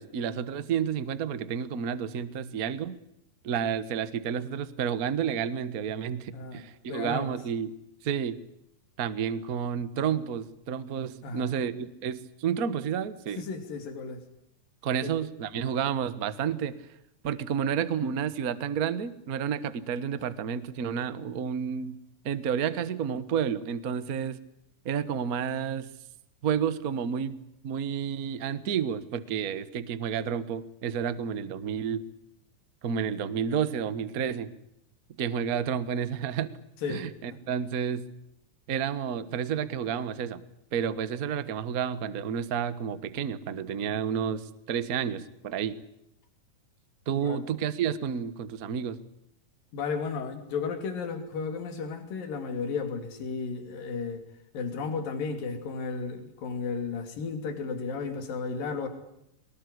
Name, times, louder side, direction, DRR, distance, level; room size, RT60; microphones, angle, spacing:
voice 1, 0.0-3.0 3.4-7.7 8.0-8.4 9.0-13.4 14.8-16.8 17.2-22.0 22.2-24.4 24.8-25.9 26.4-27.4 27.6-32.0 32.8-34.5 35.2-36.5 36.9-38.1 38.7-40.4 40.7-45.8 47.1-49.0, right 7 dB, 75° right, 14 dB, 0.8 m, -30 dB
voice 2, 6.3-7.4 11.2-11.5 13.4-14.2 15.0-15.1 36.8-37.4 47.1-47.4 49.7-54.2 54.5-58.9, left 5 dB, 85° left, 7 dB, 4.5 m, -34 dB
23.5 x 20.5 x 9.8 m, 0.79 s
omnidirectional pair, 3.9 m